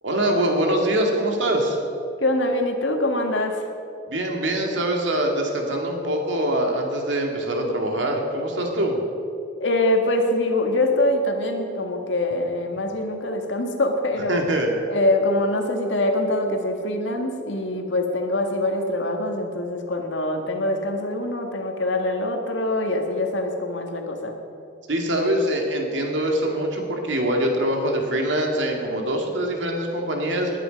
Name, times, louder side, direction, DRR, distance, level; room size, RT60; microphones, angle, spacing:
voice 1, 0.0-1.8 4.1-9.0 14.3-14.7 24.9-30.5, right 1 dB, 80° right, 1 dB, 2.4 m, -23 dB
voice 2, 2.2-3.6 9.6-14.4 14.9-24.4, left 1 dB, 80° left, 3 dB, 1.8 m, -24 dB
19.5 x 10.5 x 5.3 m, 2.7 s
head